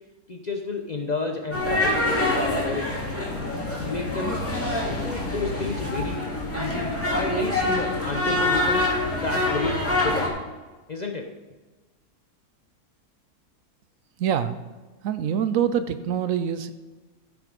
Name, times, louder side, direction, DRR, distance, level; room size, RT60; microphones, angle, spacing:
voice 1, 0.3-2.9 3.8-4.4 5.0-6.3 6.5-10.5 10.9-11.3, left 3 dB, 40° left, 2 dB, 0.7 m, -31 dB
sound 1, 1.5-10.3, left 2 dB, 10° left, 2.0 m, -26 dB
voice 2, 14.2-14.6 15.0-16.7, right 8 dB, 70° right, 12 dB, 0.9 m, -25 dB
14.0 x 6.0 x 5.2 m, 1.2 s
omnidirectional pair, 1.6 m